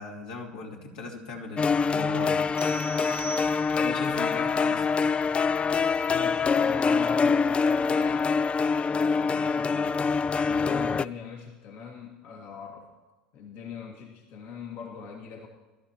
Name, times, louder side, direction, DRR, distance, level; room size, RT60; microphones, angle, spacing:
voice 1, 0.0-2.4 3.8-4.9, left 3 dB, 75° left, -1 dB, 2.9 m, -38 dB
sound 1, 1.6-11.1, left 5 dB, 25° left, 0.4 m, -25 dB
sound 2, 2.6-4.1, right 5 dB, 20° right, 0.6 m, -41 dB
voice 2, 3.7-4.0 6.1-8.3 8.9-10.1 10.4-12.9 13.3-15.5, left 6 dB, 60° left, 0 dB, 2.1 m, -41 dB
23.0 x 12.5 x 3.0 m, 1.2 s
hypercardioid pair, 80°, 5 cm